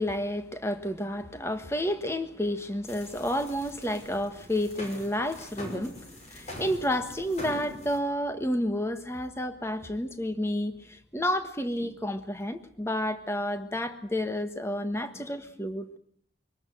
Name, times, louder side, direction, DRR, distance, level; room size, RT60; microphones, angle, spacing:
voice 1, 0.0-6.0 6.3-16.0, left 1 dB, 15° left, 9 dB, 1.4 m, -30 dB
sound 1, 2.9-8.0, equal, 35° left, 5.8 m, -43 dB
24.5 x 19.0 x 7.9 m, 0.62 s
head